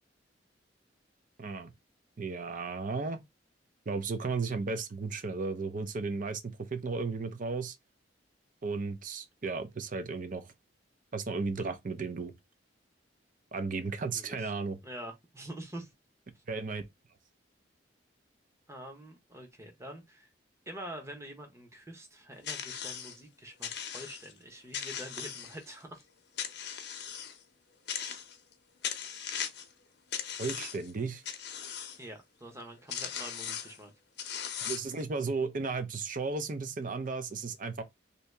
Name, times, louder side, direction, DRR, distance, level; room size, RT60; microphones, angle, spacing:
voice 1, 1.4-1.7 2.2-3.2 3.9-7.8 8.6-10.5 11.1-12.3 13.5-14.8 16.5-16.8 30.4-31.2 34.6-37.8, right 4 dB, 45° right, 0.5 m, -34 dB
voice 2, 14.1-14.5 14.8-15.9 18.7-20.3 20.7-26.0 32.0-33.9, right 1 dB, 15° right, 0.9 m, -46 dB
sound 1, 22.4-23.2 23.6-24.3 24.7-25.8 26.4-27.4 27.9-28.5 28.8-29.7 30.1-30.9 31.3-32.0 32.6-32.7 32.9-33.8 34.2-35.0, left 8 dB, 65° left, 0.6 m, -38 dB
2.8 x 2.7 x 3.3 m
head